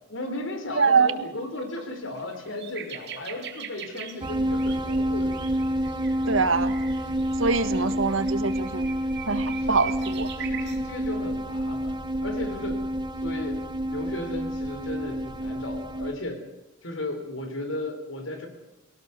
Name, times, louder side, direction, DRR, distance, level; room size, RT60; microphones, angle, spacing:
voice 1, 0.1-5.4 6.2-6.3 7.7-7.8 9.6-10.1 10.4-12.8 13.2-16.4 16.8-18.5, left 2 dB, 75° left, 6 dB, 3.6 m, -35 dB
voice 2, 0.8-1.1 6.3-6.7 7.4-8.9 9.3-10.3, right 4 dB, 90° right, 11 dB, 1.6 m, -23 dB
sound 1, 0.9-1.1 1.6-1.7 2.0-10.8 11.6-11.8, right 9 dB, 60° right, 2.8 m, -42 dB
sound 2, 4.2-16.1, equal, 25° right, 1.0 m, -28 dB
23.0 x 17.5 x 6.9 m, 0.95 s
head